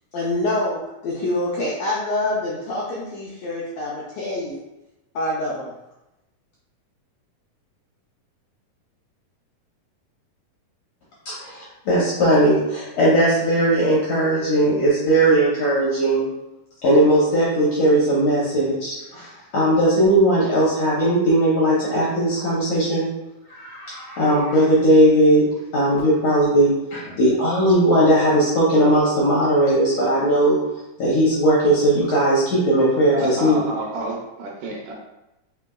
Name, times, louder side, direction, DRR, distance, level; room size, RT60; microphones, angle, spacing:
voice 1, 0.1-4.6 5.1-5.7, left 1 dB, 90° left, -5 dB, 1.4 m, -26 dB
voice 2, 11.2-16.3 16.8-23.1 23.5-25.4 25.7-30.6 31.0-33.6, right 1 dB, 70° left, -6 dB, 1.5 m, -18 dB
voice 3, 33.1-34.9, right 1 dB, 80° right, -2 dB, 2.2 m, -30 dB
4.9 x 3.5 x 2.3 m, 0.93 s
omnidirectional pair, 3.8 m